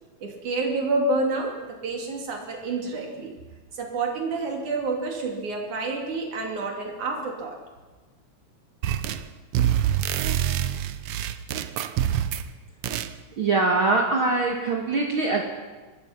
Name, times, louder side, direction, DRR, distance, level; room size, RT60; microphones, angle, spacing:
voice 1, 0.2-1.6 1.8-3.3 3.7-7.6, right 3 dB, 85° right, 1 dB, 4.2 m, -28 dB
sound 1, 8.8-9.3 9.5-12.5 12.8-13.1, right 11 dB, 70° right, 1.4 m, -26 dB
voice 2, 13.4-15.4, right 3 dB, 50° right, 2 dB, 2.2 m, -23 dB
25.0 x 19.5 x 5.9 m, 1.3 s
omnidirectional pair, 3.3 m